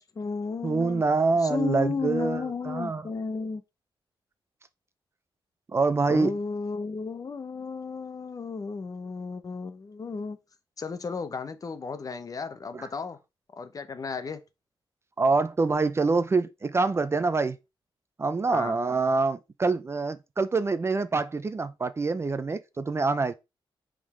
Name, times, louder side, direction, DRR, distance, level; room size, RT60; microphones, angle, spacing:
voice 1, 0.0-1.0 1.4-3.6 6.1-10.4 10.8-13.2 13.6-14.4 18.5-18.8, left 5 dB, 40° left, 0.8 m, -33 dB
voice 2, 0.6-3.1 5.7-6.4 12.7-12.9 15.2-17.6 18.2-23.3, right 3 dB, 30° right, 0.4 m, -25 dB
5.2 x 3.7 x 4.8 m
wide cardioid pair, 125°, 9 cm